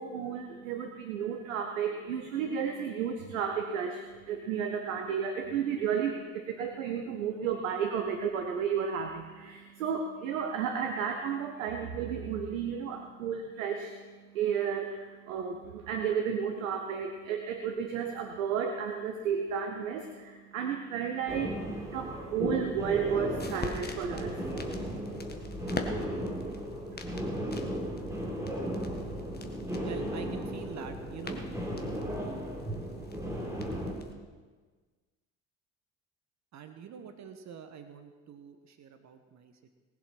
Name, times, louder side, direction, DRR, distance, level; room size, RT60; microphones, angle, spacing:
voice 1, 0.0-25.0 25.6-26.7, right 7 dB, 70° right, 5 dB, 1.0 m, -33 dB
sound 1, 21.3-33.9, equal, 5° right, 3.6 m, -36 dB
sound 2, 22.9-34.1, left 3 dB, 25° left, 1.7 m, -44 dB
voice 2, 29.8-31.4 36.5-39.7, right 7 dB, 45° right, 8 dB, 1.3 m, -45 dB
19.0 x 7.4 x 6.0 m, 1.4 s
figure-of-eight pair, 50°, 40 cm